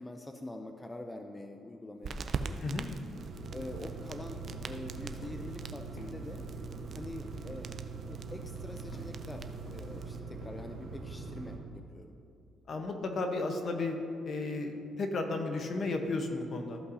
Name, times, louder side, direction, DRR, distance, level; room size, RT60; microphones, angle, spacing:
voice 1, 0.0-2.6 3.5-6.5 6.9-7.7 8.1-12.2, left 1 dB, 15° left, 5 dB, 0.5 m, -45 dB
sound 1, 2.0-10.2, right 5 dB, 55° right, 0.4 m, -44 dB
sound 2, 3.1-11.6, right 4 dB, 75° right, 1.2 m, -43 dB
sound 3, 4.4-4.7 5.2-5.5 6.0-6.1 6.7-7.0 7.5-7.8 8.2-8.5 8.9-9.2 9.7-10.1 10.4-10.6, left 1 dB, 70° left, 1.6 m, -53 dB
voice 2, 12.7-14.0 14.2-16.8, left 3 dB, 50° left, 4 dB, 1.0 m, -33 dB
14.5 x 5.5 x 2.8 m, 2.8 s
cardioid pair, 90°, 0 cm